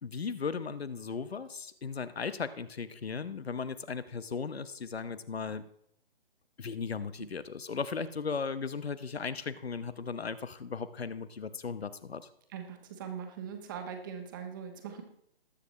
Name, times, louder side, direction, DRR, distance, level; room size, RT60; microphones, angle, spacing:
voice 1, 0.0-5.6 6.6-12.3, left 5 dB, 80° left, 14 dB, 1.0 m, -37 dB
voice 2, 12.5-15.0, right 7 dB, 20° right, 5 dB, 1.3 m, -41 dB
20.0 x 7.4 x 3.2 m, 0.69 s
hypercardioid pair, 160°, 31 cm